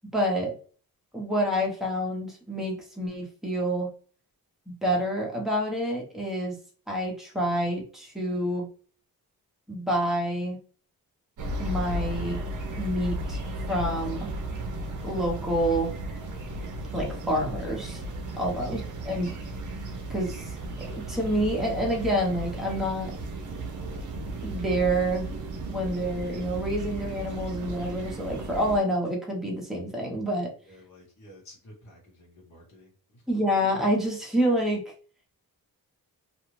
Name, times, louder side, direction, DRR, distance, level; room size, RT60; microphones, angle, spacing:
voice 1, 0.1-0.5 1.1-3.9 4.7-6.6 6.9-8.7 9.7-10.6 11.6-12.4 12.8-13.4 13.7-14.3 15.0-15.9 16.9-18.0 18.4-19.4 20.1-20.4 20.8-23.1 24.4-25.3 25.7-30.5 33.3-34.8, equal, ahead, -2 dB, 0.8 m, -28 dB
sound 1, 11.4-28.8, right 1 dB, 55° right, 0.7 m, -35 dB
voice 2, 30.6-33.2, left 1 dB, 50° left, -5 dB, 1.2 m, -52 dB
2.5 x 2.3 x 3.1 m, 0.41 s
wide cardioid pair, 150°, 37 cm